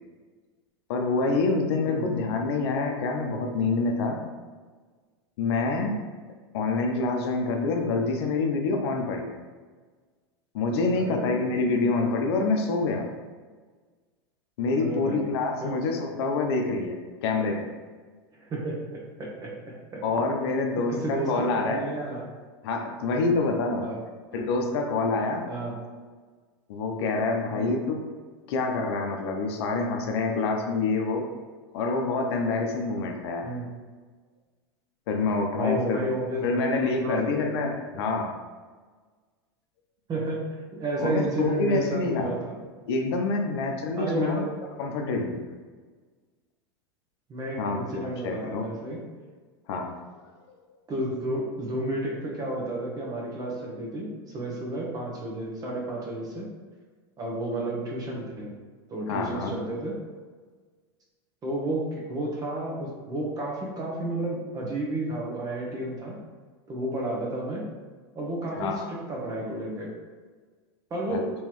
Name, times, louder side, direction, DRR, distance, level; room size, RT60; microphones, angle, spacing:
voice 1, 0.9-4.2 5.4-5.9 6.5-9.4 10.5-13.1 14.6-17.7 20.0-21.8 22.6-23.9 24.3-25.4 26.7-28.0 28.5-31.3 31.7-33.5 35.1-36.0 36.4-38.3 41.0-42.3 42.9-44.4 44.8-45.4 47.6-48.7 48.9-49.0 49.7-49.9 59.1-59.5 68.6-68.9 71.1-71.2, left 3 dB, 70° left, 3 dB, 0.6 m, -27 dB
voice 2, 10.9-11.4 11.7-12.1 14.8-15.2 15.6-15.7 18.4-20.0 20.7-22.2 23.8-24.0 24.3-24.5 25.5-25.8 27.5-27.7 33.4-33.7 35.5-37.5 37.9-38.0 40.1-40.4 40.7-42.6 43.9-44.5 45.0-45.2 47.3-49.0 50.9-56.5 57.2-58.5 58.9-59.9 61.4-66.2 66.7-67.7 68.1-69.9 70.9-71.3, right 1 dB, 25° right, -3 dB, 1.0 m, -32 dB
3.6 x 3.0 x 3.0 m, 1.5 s
supercardioid pair, 120°, 14 cm